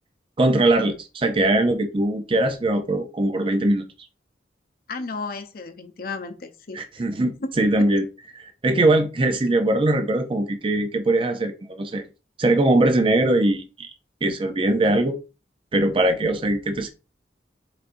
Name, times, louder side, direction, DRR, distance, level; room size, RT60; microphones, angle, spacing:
voice 1, 0.4-3.8 6.7-8.1 8.3-12.0 12.4-13.9 14.2-15.2 15.7-16.9, right 2 dB, 30° right, 0.5 m, -21 dB
voice 2, 4.9-7.1 7.4-7.5, left 3 dB, 55° left, 0.7 m, -33 dB
4.6 x 4.0 x 2.5 m
head